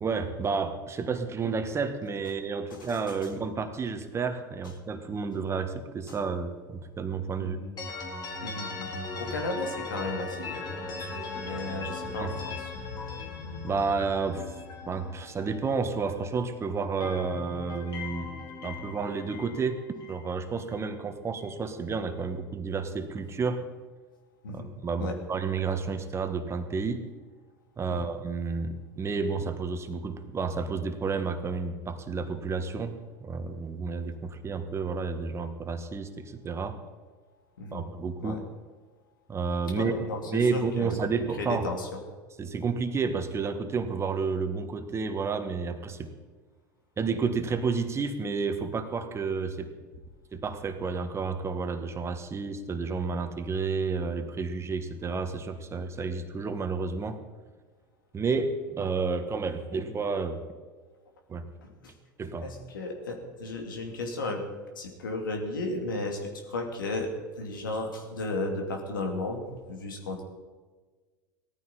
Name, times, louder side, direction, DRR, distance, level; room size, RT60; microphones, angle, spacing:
voice 1, 0.0-7.6 12.2-12.3 13.6-14.5 14.9-18.3 18.6-19.8 20.1-23.6 24.5-27.0 27.8-36.8 37.7-38.4 39.3-39.9 40.3-41.7 42.4-46.1 47.0-49.7 50.3-57.2 58.1-60.4 61.3-61.5 62.2-62.5, right 4 dB, 25° right, 8 dB, 1.5 m, -31 dB
voice 2, 2.7-3.1 6.1-6.2 7.4-7.7 8.4-10.6 11.0-11.2 11.4-12.7 24.4-24.7 25.0-25.2 27.9-28.1 37.6-37.8 38.2-38.4 39.7-40.9 41.4-42.0 61.6-61.9 62.4-64.4 64.8-67.1 67.4-70.2, left 2 dB, 80° left, 3 dB, 2.5 m, -34 dB
sound 1, 7.8-16.5 16.8-20.9, left 3 dB, 35° left, 3.7 m, -39 dB
18.0 x 14.0 x 4.3 m, 1.4 s
hypercardioid pair, 80°, 11 cm